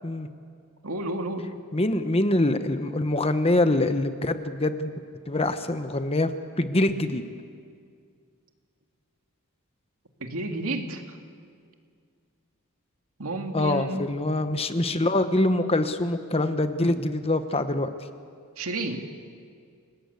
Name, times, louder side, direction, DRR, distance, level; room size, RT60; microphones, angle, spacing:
voice 1, 0.8-1.5 10.2-11.2 13.2-14.0 16.8-17.0 18.6-19.0, right 2 dB, 70° right, 4 dB, 2.4 m, -31 dB
voice 2, 1.7-4.9 5.3-6.3 6.6-7.2 13.5-17.9, left 2 dB, 25° left, 9 dB, 1.1 m, -24 dB
29.0 x 18.0 x 8.4 m, 2.2 s
head